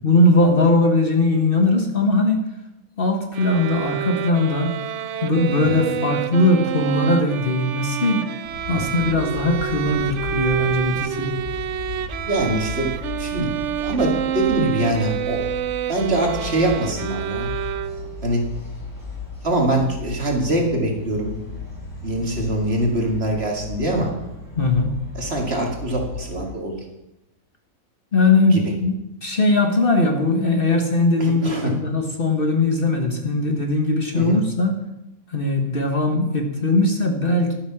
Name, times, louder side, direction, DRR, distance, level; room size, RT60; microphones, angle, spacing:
voice 1, 0.0-2.4 3.0-4.8 5.2-8.2 8.7-11.3 24.5-24.9 28.1-28.9 29.2-34.8 35.3-37.5, left 2 dB, 40° left, 4 dB, 1.4 m, -19 dB
sound 1, 3.3-18.3, right 10 dB, 65° right, 0.9 m, -28 dB
sound 2, 8.4-26.5, left 4 dB, 75° left, 5.8 m, -36 dB
voice 2, 12.3-12.9 13.2-13.5 13.8-15.4 15.9-17.5 18.2-18.4 19.4-21.3 22.0-24.1 25.1-26.8 28.5-28.6 31.2-31.7 34.1-34.4, right 1 dB, 45° right, 1 dB, 2.4 m, -23 dB
11.5 x 8.5 x 5.9 m, 0.92 s
omnidirectional pair, 1.5 m